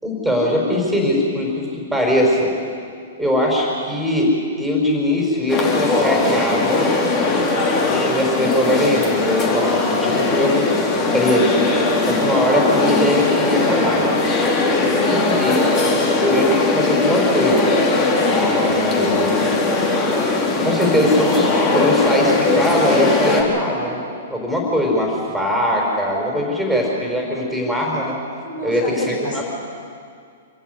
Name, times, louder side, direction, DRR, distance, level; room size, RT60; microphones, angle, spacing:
voice 1, 0.0-2.5 3.2-4.3 4.6-6.9 7.9-10.7 11.1-11.6 12.0-14.2 15.0-15.6 16.2-17.8 18.4-19.6 20.6-24.0 24.3-28.2 28.6-29.4, left 1 dB, ahead, -2 dB, 5.3 m, -21 dB
sound 1, 5.5-23.4, left 3 dB, 30° left, 4.0 m, -19 dB
voice 2, 14.7-15.8 28.4-29.4, left 1 dB, 65° left, 0 dB, 7.1 m, -30 dB
26.5 x 15.0 x 8.2 m, 2.2 s
hypercardioid pair, 120°, 0 cm